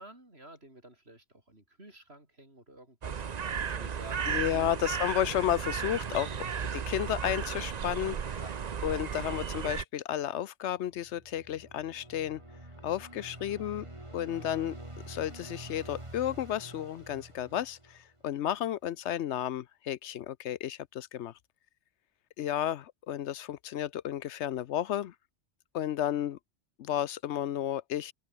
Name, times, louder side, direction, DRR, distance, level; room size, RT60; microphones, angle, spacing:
voice 1, 0.0-4.7 6.3-6.6 8.4-8.5, right 1 dB, 60° right, 6.8 m, -51 dB
sound 1, 3.0-9.8, right 7 dB, 40° right, 0.7 m, -34 dB
voice 2, 4.3-6.3 6.7-8.4 8.8-12.4 12.8-13.8 14.1-14.7 15.1-21.3 22.4-25.1 25.7-26.4 26.8-28.1, left 11 dB, 75° left, 0.9 m, -32 dB
sound 2, 10.9-18.3, right 1 dB, 25° right, 3.9 m, -47 dB
omnidirectional pair, 1.2 m